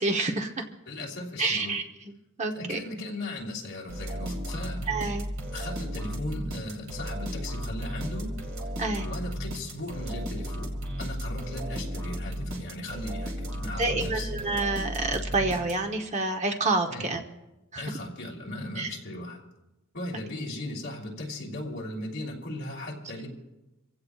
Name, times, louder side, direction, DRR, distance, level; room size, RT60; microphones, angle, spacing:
voice 1, 0.0-0.7 1.4-2.1 2.4-2.8 4.9-5.3 8.8-9.1 13.8-17.2 17.7-17.9 18.8-18.9, right 3 dB, 30° right, 4 dB, 0.9 m, -28 dB
voice 2, 0.9-1.7 2.5-4.8 5.5-8.3 9.0-14.3 16.9-17.1 17.8-19.4 19.9-23.3, left 1 dB, 50° left, -2 dB, 2.9 m, -37 dB
sound 1, 3.9-16.1, equal, 60° right, 2.3 m, -34 dB
26.5 x 16.0 x 2.4 m, 0.98 s
head